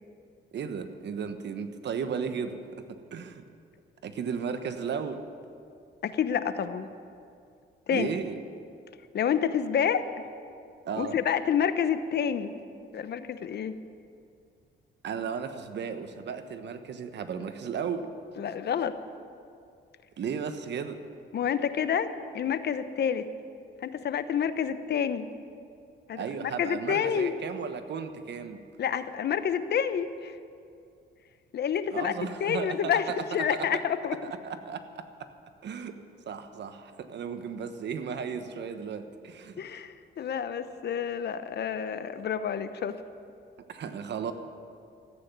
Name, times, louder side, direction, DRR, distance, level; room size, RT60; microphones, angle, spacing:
voice 1, 0.5-2.8 3.1-3.4 4.0-5.2 7.9-8.4 10.9-11.2 15.0-18.1 20.2-21.0 26.1-28.6 31.9-33.1 33.5-33.6 34.4-35.0 35.6-35.9 36.3-39.6 43.7-44.3, right 6 dB, 60° right, 9 dB, 1.2 m, -35 dB
voice 2, 6.0-6.9 7.9-8.1 9.1-10.1 11.0-12.5 12.9-13.7 18.4-19.0 21.3-23.3 23.8-25.3 26.1-27.4 28.8-30.4 31.5-32.1 32.4-34.2 39.6-43.0, left 8 dB, 55° left, 12 dB, 0.9 m, -28 dB
14.5 x 9.1 x 9.5 m, 2.4 s
cardioid pair, 90°, 20 cm